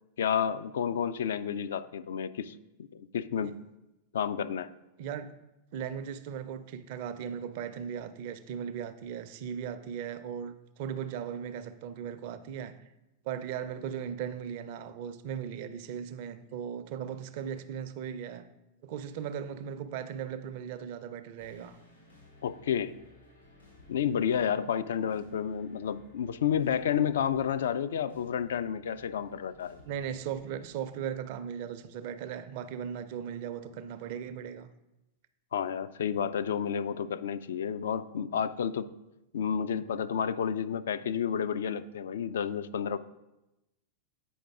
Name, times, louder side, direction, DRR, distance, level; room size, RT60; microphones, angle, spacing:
voice 1, 0.2-2.6 2.9-3.5 4.1-4.7 22.4-22.9 23.9-29.8 35.5-38.9 39.3-43.0, left 8 dB, 60° left, 0.3 m, -30 dB
voice 2, 5.7-12.7 13.2-18.5 18.8-21.8 29.8-34.7, right 8 dB, 50° right, 0.5 m, -38 dB
sound 1, 21.4-31.0, left 2 dB, 85° left, 2.7 m, -57 dB
8.5 x 5.1 x 3.5 m
figure-of-eight pair, 90°, 0 cm